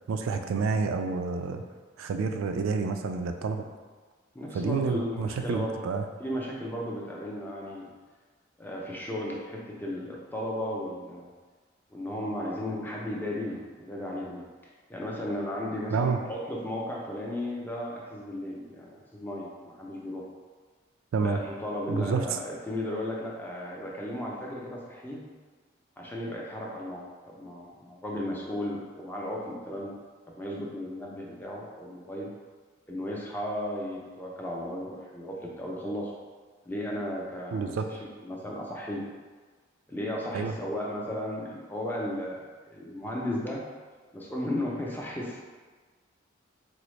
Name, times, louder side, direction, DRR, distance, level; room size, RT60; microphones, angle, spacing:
voice 1, 0.1-1.6 2.0-3.7 4.5-6.0 15.9-16.2 21.1-21.4 21.9-22.4 37.5-37.9 40.3-40.5, right 5 dB, 85° right, 6 dB, 0.3 m, -29 dB
voice 2, 4.3-5.9 6.2-7.9 8.6-11.3 11.9-14.5 14.9-20.2 21.2-25.2 26.0-30.0 30.3-32.3 32.9-36.1 36.7-39.1 39.9-42.4 42.7-43.6 44.1-45.4, left 1 dB, 10° left, -3 dB, 0.4 m, -35 dB
3.9 x 2.0 x 3.1 m, 1.4 s
head